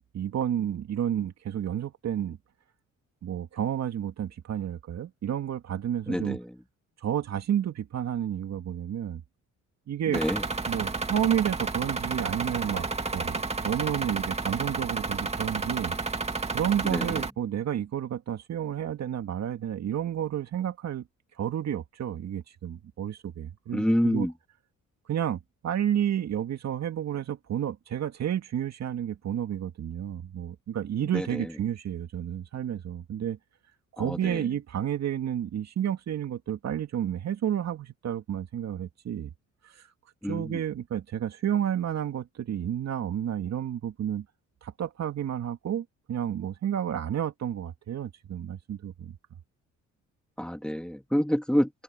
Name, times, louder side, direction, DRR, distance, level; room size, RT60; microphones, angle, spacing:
voice 1, 0.0-2.4 3.2-6.4 7.0-9.2 9.9-10.2 10.7-12.9 13.1-15.9 16.5-21.0 21.4-24.3 25.1-33.4 33.9-39.3 39.6-39.8 40.3-44.3 44.6-49.2, right 10 dB, 60° right, 2.4 m, -31 dB
voice 2, 6.1-6.4 10.1-10.4 16.8-17.2 23.7-24.3 31.1-31.4 34.0-34.4 40.2-40.6 50.4-51.8, equal, 5° left, 2.3 m, -28 dB
sound 1, 10.1-17.3, right 3 dB, 20° right, 2.4 m, -31 dB
cardioid pair, 90°, 30 cm